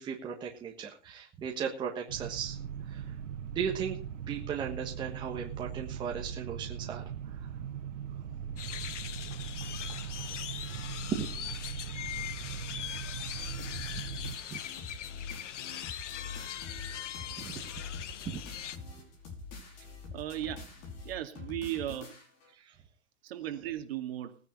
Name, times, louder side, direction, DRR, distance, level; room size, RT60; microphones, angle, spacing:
voice 1, 0.0-2.6 2.9-3.1 3.5-4.0 4.3-7.0 7.4-7.5 9.9-10.4 11.0-11.3 13.9-14.0 14.5-14.6 17.4-17.6 22.6-22.7, right 7 dB, 10° right, 0 dB, 1.4 m, -37 dB
sound 1, 2.1-14.4, right 8 dB, 75° right, 1.8 m, -40 dB
sound 2, 8.6-18.8, left 10 dB, 65° left, 1.3 m, -41 dB
sound 3, 13.4-22.5, left 4 dB, 35° left, 5.1 m, -45 dB
voice 2, 20.1-20.7 21.0-22.2 23.2-24.4, right 12 dB, 50° right, 6 dB, 2.4 m, -36 dB
19.0 x 10.0 x 4.4 m, 0.36 s
hypercardioid pair, 170°, 38 cm